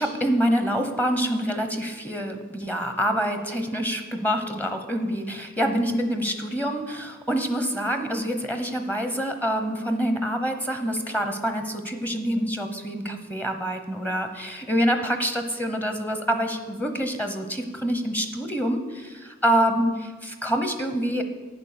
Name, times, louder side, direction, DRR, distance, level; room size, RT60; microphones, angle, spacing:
voice 1, 0.0-21.2, equal, 10° left, 7 dB, 1.0 m, -26 dB
11.5 x 9.2 x 6.8 m, 1.4 s
head